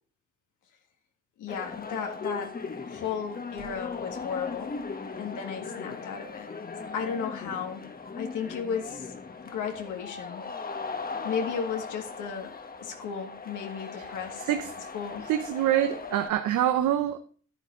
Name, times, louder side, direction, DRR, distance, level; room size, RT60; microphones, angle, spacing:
voice 1, 1.4-2.6 2.8-4.7 5.2-6.5 6.9-7.8 8.2-9.1 9.4-10.4 11.2-12.5 12.8-14.4 14.9-15.3, left 7 dB, 80° left, 1.8 m, -34 dB
sound 1, 1.5-16.3, left 4 dB, 30° left, 1.3 m, -38 dB
voice 2, 15.3-17.2, right 11 dB, 80° right, 0.9 m, -25 dB
9.8 x 9.3 x 3.9 m
cardioid pair, 90°, 30 cm